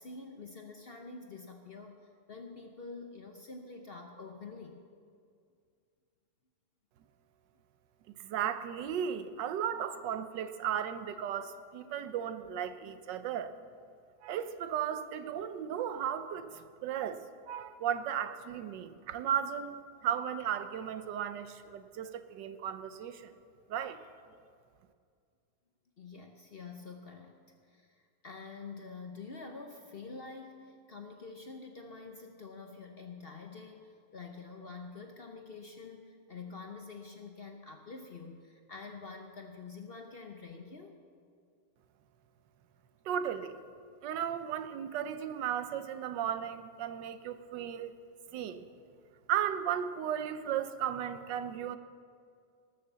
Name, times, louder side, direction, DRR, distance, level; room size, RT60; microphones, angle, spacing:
voice 1, 0.0-2.0 2.3-4.8 26.0-27.4 27.7-41.0, left 4 dB, 45° left, 4 dB, 0.8 m, -47 dB
voice 2, 8.2-13.5 14.2-17.2 17.5-19.8 20.0-23.3 23.7-24.0 43.1-43.6 44.0-47.9 48.3-48.6 49.3-51.8, right 9 dB, 90° right, 11 dB, 1.4 m, -35 dB
19.0 x 6.8 x 6.8 m, 2.2 s
omnidirectional pair, 1.9 m